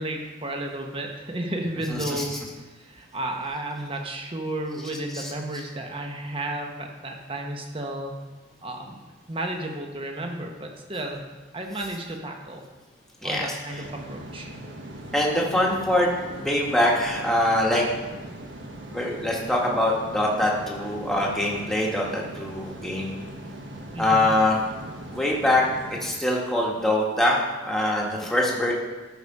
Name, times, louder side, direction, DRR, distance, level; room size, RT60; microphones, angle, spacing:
voice 1, 0.0-2.4 2.7-8.1 8.6-11.2 11.5-12.6 13.2-14.5 23.9-24.3, right 1 dB, 30° right, 2 dB, 1.1 m, -33 dB
voice 2, 1.9-2.4 5.1-5.3 13.2-13.5 15.1-17.8 18.9-23.2 24.0-24.6 25.1-25.7 26.0-28.7, left 1 dB, ahead, -3 dB, 1.4 m, -23 dB
sound 1, 13.7-26.1, right 1 dB, 70° right, 1.2 m, -40 dB
13.0 x 5.0 x 5.4 m, 1.2 s
head